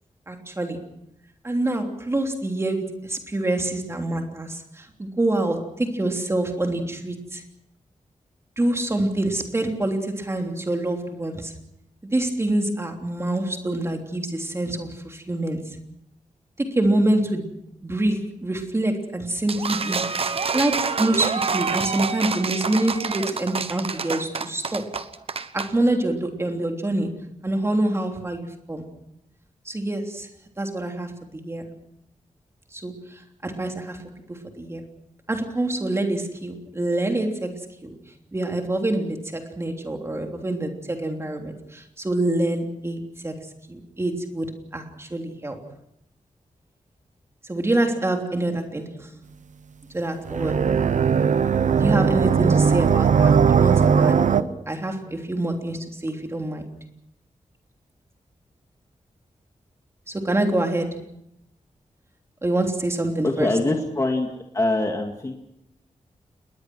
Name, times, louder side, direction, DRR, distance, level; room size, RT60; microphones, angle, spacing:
voice 1, 0.3-0.8 1.4-7.4 8.6-11.5 12.1-15.8 16.7-17.5 17.8-20.1 20.5-25.0 25.5-28.9 29.6-30.3 30.6-31.7 32.7-34.8 35.3-38.0 38.3-43.4 43.7-45.6 47.5-49.1 49.9-50.7 51.8-56.7 60.1-61.0 62.4-63.5, right 1 dB, 20° right, 3 dB, 3.3 m, -26 dB
sound 1, 19.5-25.7, right 5 dB, 50° right, 1.2 m, -27 dB
sound 2, 50.3-54.4, right 6 dB, 70° right, 0.9 m, -18 dB
voice 2, 63.2-65.3, left 2 dB, 25° left, 2 dB, 2.1 m, -24 dB
28.5 x 21.0 x 6.3 m, 0.79 s
wide cardioid pair, 170°, 13 cm